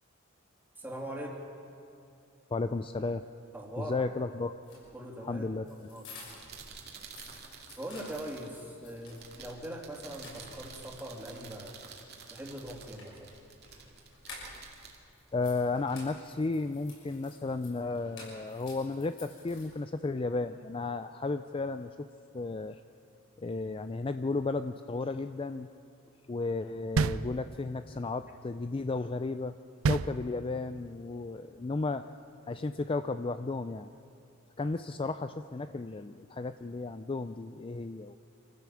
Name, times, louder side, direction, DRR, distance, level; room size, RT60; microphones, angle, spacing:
voice 1, 0.8-1.4 3.5-4.0 4.9-6.1 7.8-11.8 12.3-13.3, right 1 dB, 10° right, -1 dB, 3.0 m, -41 dB
voice 2, 2.5-3.2 3.8-4.5 5.2-5.6 15.3-22.1 22.3-22.8 23.4-25.7 26.3-29.6 29.9-32.0 32.5-33.9 34.6-38.2, left 3 dB, 25° left, 10 dB, 0.4 m, -34 dB
sound 1, 4.6-6.6 6.9-9.3 9.7-9.8 10.1-10.9 12.5-14.8 15.1-20.1, left 3 dB, 60° left, 6.4 m, -52 dB
sound 2, 6.1-15.9, right 5 dB, 50° right, 2.4 m, -51 dB
sound 3, 27.0-27.9 29.8-30.8, right 4 dB, 85° right, 0.5 m, -30 dB
26.0 x 15.0 x 7.1 m, 2.6 s
head